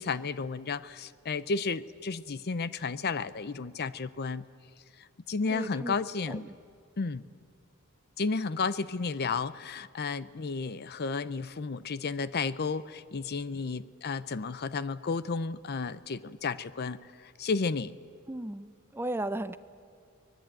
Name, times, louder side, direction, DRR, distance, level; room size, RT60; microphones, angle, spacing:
voice 1, 0.0-4.5 5.3-6.5 7.0-7.3 8.2-17.9, left 4 dB, 45° left, 16 dB, 0.6 m, -32 dB
voice 2, 5.5-5.9 6.3-6.5 18.3-19.6, right 1 dB, 10° right, 13 dB, 0.5 m, -35 dB
24.5 x 19.5 x 9.0 m, 2.3 s
head